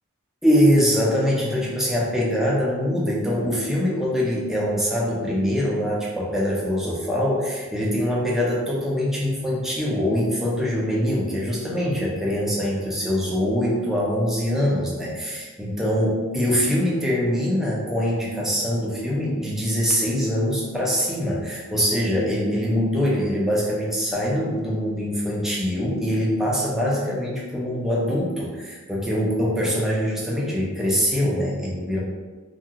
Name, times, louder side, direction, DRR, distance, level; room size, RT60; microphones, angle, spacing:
voice 1, 0.4-32.0, equal, ahead, -5 dB, 0.5 m, -23 dB
2.8 x 2.4 x 2.8 m, 1.3 s
head